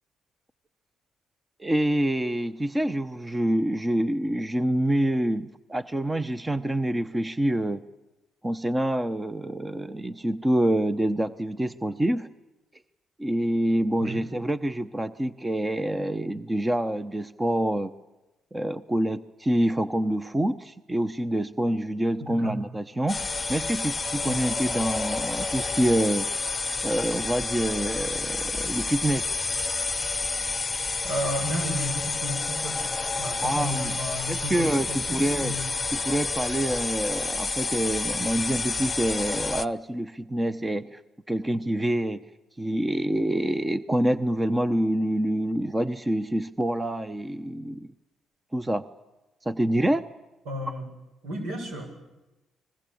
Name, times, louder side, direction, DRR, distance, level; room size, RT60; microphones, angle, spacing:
voice 1, 1.6-7.8 8.4-12.3 13.2-17.9 18.5-23.2 23.5-26.3 26.8-29.4 33.4-33.9 34.3-35.5 35.9-41.0 41.3-42.2 42.6-47.9 48.5-48.8 49.4-50.1, right 1 dB, 15° right, 13 dB, 0.9 m, -26 dB
voice 2, 22.2-22.6 24.3-24.4 31.0-32.9 33.2-35.7 50.5-50.8 51.2-51.9, equal, 75° right, 4 dB, 7.7 m, -33 dB
sound 1, 23.1-39.6, left 3 dB, 25° left, 0.9 m, -29 dB
29.5 x 21.0 x 8.7 m, 1.0 s
cardioid pair, 90°, 0 cm